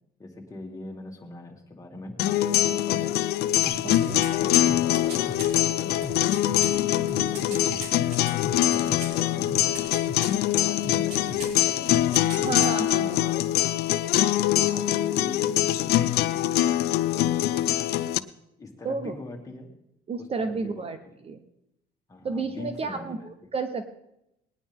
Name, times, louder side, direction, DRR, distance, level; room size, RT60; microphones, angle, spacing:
voice 1, 0.2-3.1 3.8-6.3 6.6-9.8 10.1-12.6 13.2-13.7 14.5-16.6 16.9-17.9 18.6-19.7 20.2-21.1 22.1-23.5, left 2 dB, 20° left, 0 dB, 2.3 m, -42 dB
sound 1, 2.2-18.2, left 13 dB, 70° left, 0.5 m, -24 dB
sound 2, 3.6-5.5 6.0-9.2 9.5-10.4 10.8-11.6 11.9-12.8 13.1-13.2, equal, 70° right, 3.7 m, -36 dB
voice 2, 3.8-4.2 12.4-13.2 18.8-19.1 20.1-21.0 21.2-21.4 22.2-23.9, right 4 dB, 35° right, 9 dB, 0.9 m, -31 dB
19.5 x 9.9 x 3.6 m, 0.83 s
cardioid pair, 110°, 17 cm